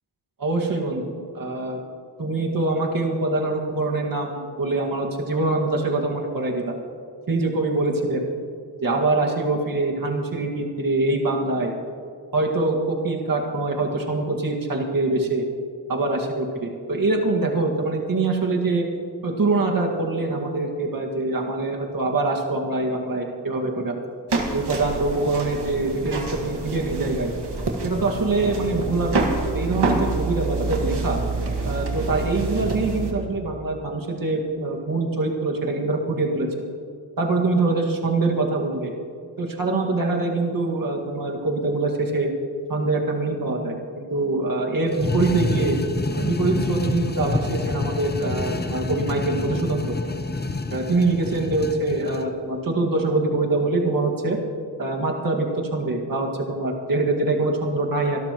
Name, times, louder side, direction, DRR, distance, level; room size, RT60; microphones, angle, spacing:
voice 1, 0.4-1.8 2.2-6.7 7.3-8.2 8.8-11.7 12.3-15.5 15.9-18.9 19.2-23.9 24.5-27.3 27.8-29.3 29.5-31.2 31.7-36.5 37.2-38.9 39.4-42.3 42.7-45.8 46.1-49.9 50.7-54.4 54.8-58.2, right 2 dB, 50° right, 0 dB, 2.0 m, -24 dB
sound 1, 24.3-33.1, right 3 dB, 65° right, 1.9 m, -27 dB
sound 2, 44.9-52.3, left 3 dB, 25° left, 0.7 m, -28 dB
25.0 x 12.5 x 3.0 m, 2.3 s
wide cardioid pair, 100°, 43 cm